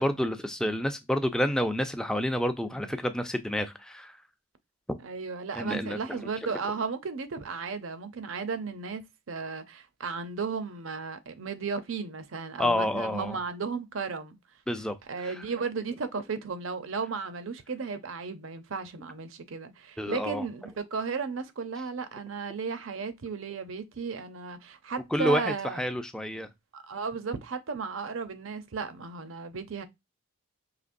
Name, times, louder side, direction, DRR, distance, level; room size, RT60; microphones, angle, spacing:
voice 1, 0.0-4.1 4.9-5.0 5.6-6.0 12.6-13.4 14.7-15.0 15.3-15.4 20.0-20.4 25.1-26.5, left 1 dB, 5° left, 0.4 m, -29 dB
voice 2, 5.0-14.4 15.0-25.8 26.7-29.8, right 5 dB, 70° right, 0.6 m, -35 dB
5.1 x 2.9 x 2.5 m
head